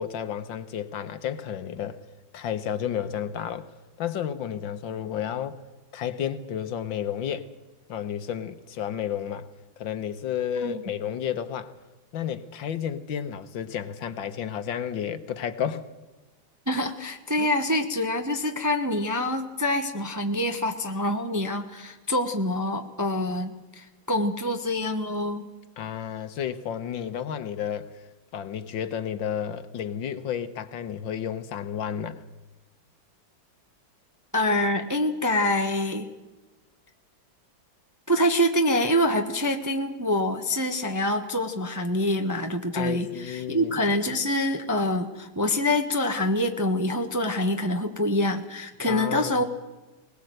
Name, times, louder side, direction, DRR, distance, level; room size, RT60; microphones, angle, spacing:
voice 1, 0.0-2.0 2.3-3.7 4.0-5.6 5.9-7.5 7.9-9.5 9.8-11.7 12.1-15.8 17.4-17.5 25.8-27.9 28.3-32.2 42.7-43.8 48.9-49.4, left 9 dB, 70° left, 1.7 m, -31 dB
voice 2, 16.7-25.5 34.3-36.1 38.1-49.4, left 1 dB, 10° right, 0.9 m, -26 dB
20.5 x 20.0 x 7.9 m
omnidirectional pair, 2.2 m